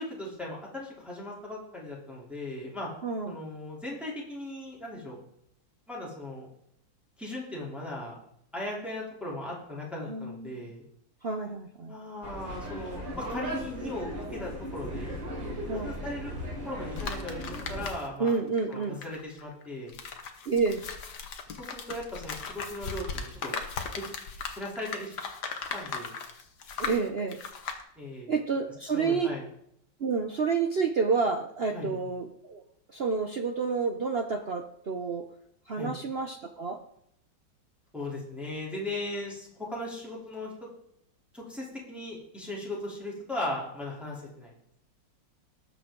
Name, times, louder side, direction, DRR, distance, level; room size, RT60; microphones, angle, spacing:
voice 1, 0.0-2.9 3.2-5.2 5.9-6.5 7.2-8.1 8.5-10.8 11.9-15.1 15.7-16.3 16.6-18.4 18.7-19.9 21.5-23.5 24.6-25.2 25.7-26.1 28.0-28.3 28.8-29.4 31.7-32.0 35.8-35.9 37.9-40.7 41.3-44.5, left 1 dB, ahead, -5 dB, 3.2 m, -38 dB
voice 2, 3.0-3.4 10.1-10.5 11.2-11.9 15.7-16.0 18.2-19.0 20.5-20.8 26.8-27.4 28.3-29.3 30.0-32.6 32.9-35.2 35.7-36.8, right 5 dB, 60° right, 5 dB, 0.6 m, -29 dB
sound 1, 12.2-17.9, equal, 80° right, 3.7 m, -37 dB
sound 2, 17.0-18.3 18.6-27.8, left 5 dB, 60° left, 1.7 m, -38 dB
18.5 x 7.3 x 3.8 m, 0.72 s
omnidirectional pair, 2.1 m